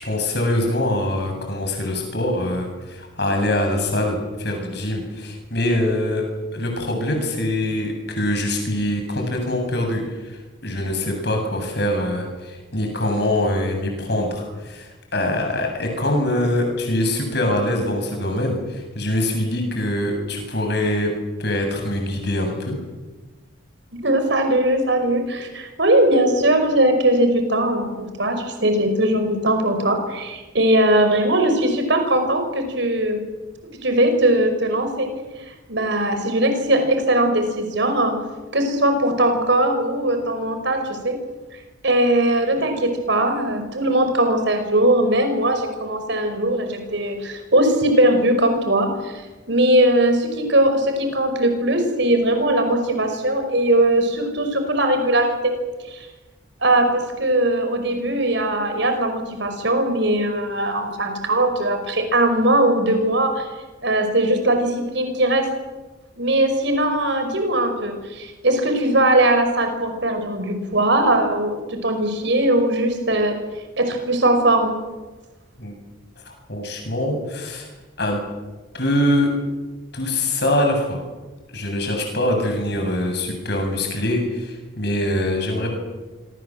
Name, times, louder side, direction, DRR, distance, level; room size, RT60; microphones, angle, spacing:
voice 1, 0.0-6.2 6.5-21.1 21.4-22.8 75.6-75.8 76.3-77.7 78.0-78.2 78.7-79.3 79.9-81.0 81.5-85.8, left 1 dB, 55° left, 3 dB, 7.6 m, -23 dB
voice 2, 24.0-33.2 33.6-35.1 35.7-38.1 38.5-41.2 41.8-55.6 55.9-56.1 56.6-63.5 63.8-65.5 66.2-73.4 73.8-74.8, right 1 dB, 60° right, 6 dB, 5.3 m, -20 dB
26.5 x 23.5 x 7.8 m, 1.2 s
head